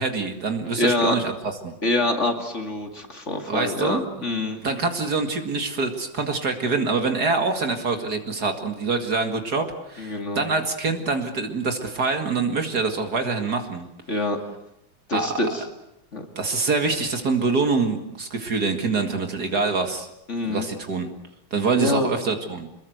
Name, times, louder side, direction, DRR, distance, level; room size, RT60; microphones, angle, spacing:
voice 1, 0.0-1.7 3.5-4.0 4.6-13.9 15.1-15.3 16.4-20.1 20.4-21.1 21.5-22.7, right 4 dB, 50° right, 6 dB, 2.6 m, -25 dB
voice 2, 0.7-1.2 1.8-4.6 10.0-10.5 14.1-14.4 15.1-15.6 16.1-16.3 20.3-20.7 21.7-22.1, left 2 dB, 35° left, 4 dB, 2.7 m, -25 dB
27.5 x 21.5 x 8.0 m, 0.81 s
omnidirectional pair, 2.2 m